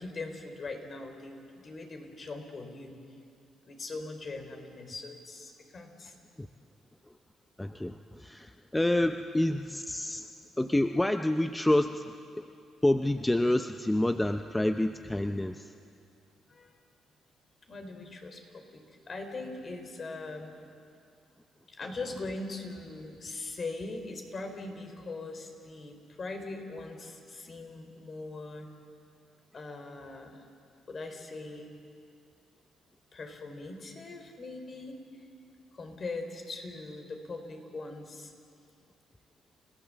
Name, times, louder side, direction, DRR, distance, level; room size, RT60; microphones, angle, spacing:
voice 1, 0.0-2.9 3.7-6.2 16.5-16.8 17.7-20.5 21.7-28.7 29.5-30.4 30.9-31.7 33.1-35.2 35.7-38.3, left 3 dB, 40° left, 5 dB, 3.6 m, -41 dB
voice 2, 7.6-10.2 10.6-12.4 12.8-15.7, left 1 dB, 10° left, 7 dB, 0.7 m, -28 dB
30.0 x 16.0 x 7.5 m, 2.4 s
cardioid pair, 90°, 0 cm